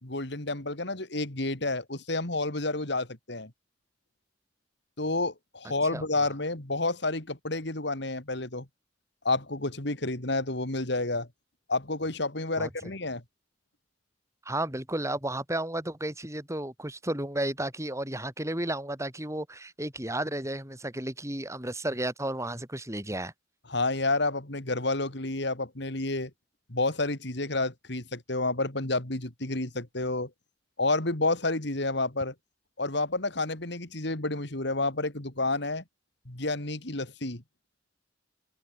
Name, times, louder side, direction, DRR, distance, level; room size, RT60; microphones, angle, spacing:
voice 1, 0.0-3.5 5.0-8.6 9.2-11.3 11.7-13.2 23.7-26.3 26.7-30.3 30.8-32.3 32.8-35.8 36.3-37.4, left 2 dB, 60° left, 3.2 m, -30 dB
voice 2, 5.9-6.3 12.6-12.9 14.5-23.3, right 1 dB, 15° right, 7.4 m, -33 dB
open air
head